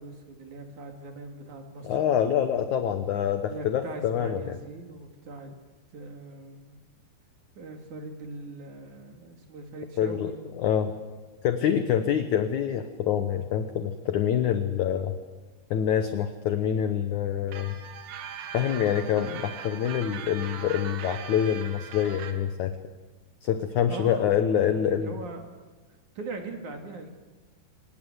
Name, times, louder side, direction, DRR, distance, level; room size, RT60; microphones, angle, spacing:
voice 1, 0.0-2.2 3.5-5.5 5.9-6.8 7.6-10.9 23.9-24.3 24.6-25.4 26.1-27.1, right 3 dB, 50° right, 4 dB, 3.2 m, -41 dB
voice 2, 1.8-4.4 10.0-10.3 10.6-10.9 11.4-15.1 15.7-17.8 18.5-22.7 23.4-25.2, left 9 dB, 85° left, 9 dB, 1.7 m, -26 dB
sound 1, 17.5-22.3, right 8 dB, 75° right, 3.8 m, -40 dB
25.0 x 19.5 x 8.0 m, 1.3 s
omnidirectional pair, 4.9 m